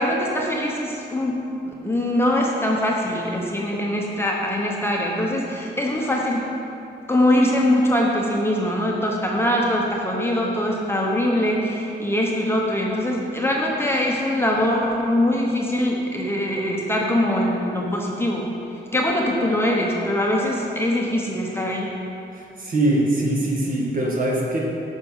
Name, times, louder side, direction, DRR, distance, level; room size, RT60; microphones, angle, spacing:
voice 1, 0.0-1.4 1.8-6.5 7.1-18.5 18.9-21.9, left 1 dB, 10° left, -2 dB, 1.0 m, -22 dB
voice 2, 22.3-24.6, right 1 dB, 45° right, -2 dB, 1.8 m, -22 dB
9.6 x 6.4 x 5.6 m, 2.7 s
wide cardioid pair, 150°, 20 cm